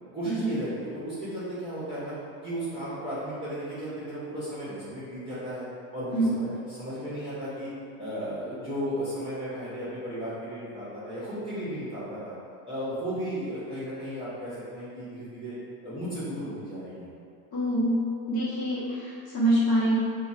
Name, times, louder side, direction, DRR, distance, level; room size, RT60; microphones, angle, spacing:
voice 1, 0.1-2.1 2.4-5.6 5.9-7.7 8.0-12.3 12.6-15.5 15.8-17.1, equal, 10° right, -14 dB, 0.8 m, -35 dB
voice 2, 17.5-18.0 18.3-19.9, right 1 dB, 45° left, -11 dB, 1.2 m, -25 dB
2.8 x 2.4 x 2.6 m, 2.3 s
supercardioid pair, 130°, 42 cm